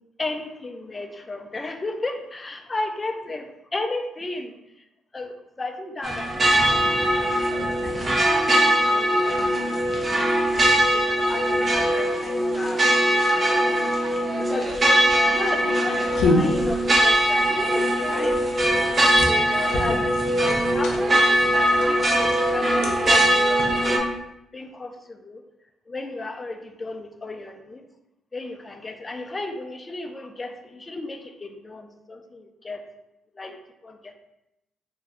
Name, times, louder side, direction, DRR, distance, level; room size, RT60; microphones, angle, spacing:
voice 1, 0.2-4.5 5.1-10.0 10.6-12.8 13.3-14.0 14.5-18.4 18.8-20.1 20.4-21.3 21.8-24.0 24.5-25.4 25.9-27.8 28.3-32.8 33.4-33.6 33.8-34.1, left 2 dB, 25° left, 5 dB, 0.4 m, -35 dB
sound 1, 6.0-24.0, right 1 dB, 35° right, 0.5 m, -21 dB
sound 2, 14.7-24.2, left 2 dB, 80° left, 0.5 m, -30 dB
2.6 x 2.3 x 3.3 m, 0.87 s
cardioid pair, 90°, 0 cm